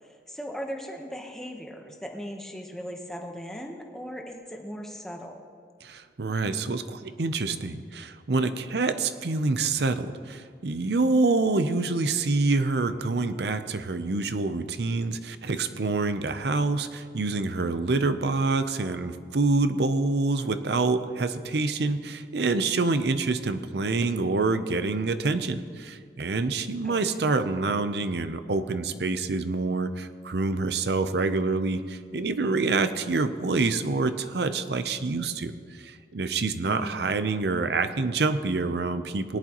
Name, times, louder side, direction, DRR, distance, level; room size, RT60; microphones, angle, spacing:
voice 1, 0.3-5.4 26.8-27.3 36.8-37.2, equal, 5° left, 1 dB, 1.0 m, -38 dB
voice 2, 5.8-35.6 35.8-39.4, right 3 dB, 75° right, 11 dB, 0.6 m, -26 dB
18.0 x 11.0 x 3.0 m, 2.1 s
head